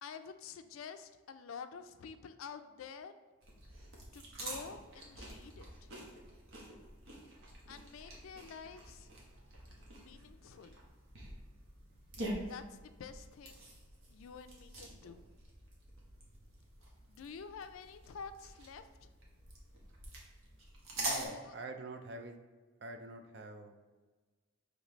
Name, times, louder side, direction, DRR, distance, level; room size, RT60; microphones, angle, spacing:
voice 1, 0.0-3.2 4.1-5.9 7.7-9.1 9.9-10.8 12.4-13.7 14.1-15.3 17.1-19.1 21.2-21.6, left 6 dB, 85° left, 9 dB, 0.4 m, -49 dB
sound 1, 3.4-21.3, right 1 dB, 85° right, 1.1 m, -46 dB
voice 2, 21.0-22.4 22.8-23.8, right 2 dB, 55° right, 5 dB, 0.4 m, -46 dB
5.2 x 3.1 x 3.1 m, 1.3 s
head